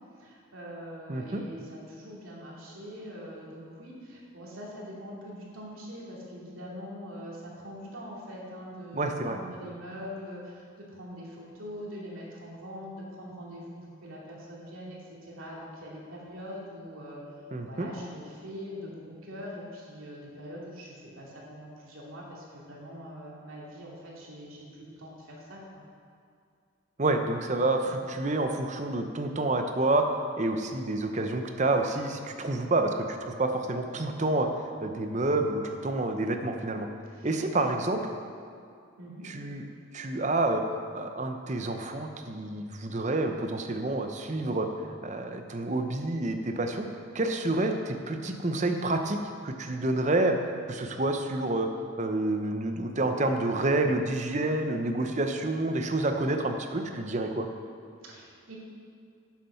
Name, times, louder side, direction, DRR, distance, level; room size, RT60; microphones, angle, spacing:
voice 1, 0.0-25.8 27.8-28.0 37.1-37.4 39.0-39.3 58.0-58.6, equal, 90° right, -4 dB, 2.4 m, -43 dB
voice 2, 1.1-1.4 8.9-9.4 17.5-17.9 27.0-30.1 30.4-34.5 34.8-36.9 37.2-38.1 39.2-39.6 39.9-40.6 40.9-44.7 45.0-46.9 47.1-50.4 50.7-51.7 52.0-57.5, right 2 dB, 35° right, 5 dB, 0.7 m, -28 dB
9.1 x 7.3 x 5.6 m, 2.3 s
head